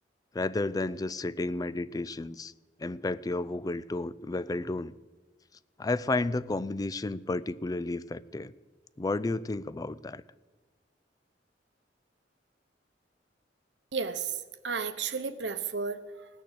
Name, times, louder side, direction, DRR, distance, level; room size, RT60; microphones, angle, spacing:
voice 1, 0.3-2.5 2.8-4.9 5.8-8.5 9.0-10.2, left 2 dB, 20° left, 17 dB, 0.4 m, -32 dB
voice 2, 13.9-14.4 14.6-16.3, right 5 dB, 75° right, 11 dB, 0.9 m, -33 dB
18.0 x 6.8 x 8.0 m, 1.3 s
head